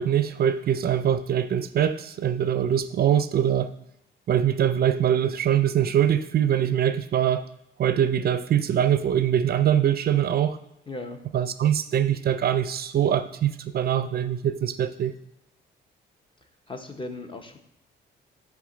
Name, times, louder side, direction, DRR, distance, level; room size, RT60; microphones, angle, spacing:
voice 1, 0.0-3.7 4.3-7.4 7.8-10.6 11.3-15.1, right 9 dB, 50° right, 11 dB, 0.4 m, -23 dB
voice 2, 10.9-11.2 16.7-17.6, left 2 dB, 25° left, 6 dB, 0.8 m, -36 dB
7.1 x 3.6 x 3.8 m, 0.84 s
cardioid pair, 90°, 20 cm